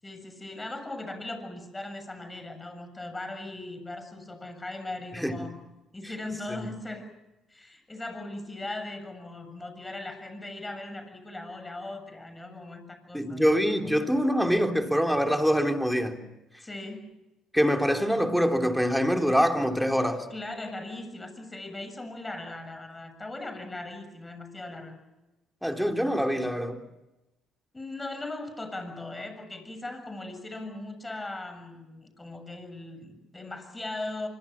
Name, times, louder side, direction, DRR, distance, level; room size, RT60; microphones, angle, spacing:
voice 1, 0.0-5.6 5.9-7.1 7.5-14.1 16.6-17.1 20.3-25.0 26.3-26.5 27.7-34.3, left 2 dB, 20° left, 8 dB, 7.3 m, -39 dB
voice 2, 13.1-16.2 17.5-20.3 25.6-26.7, equal, ahead, 4 dB, 3.5 m, -24 dB
25.0 x 23.5 x 7.4 m, 0.99 s
supercardioid pair, 65°, 0 cm